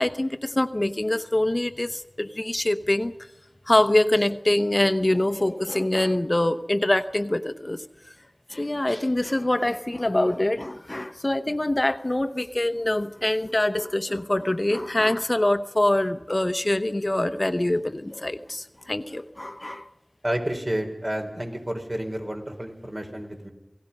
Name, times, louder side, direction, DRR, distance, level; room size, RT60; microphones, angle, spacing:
voice 1, 0.0-3.1 3.7-7.8 8.5-19.9, left 1 dB, 40° left, 10 dB, 0.9 m, -24 dB
voice 2, 20.2-23.5, right 1 dB, 40° right, 3 dB, 4.1 m, -30 dB
28.0 x 18.0 x 5.5 m, 1.0 s
wide cardioid pair, 45°, 0 cm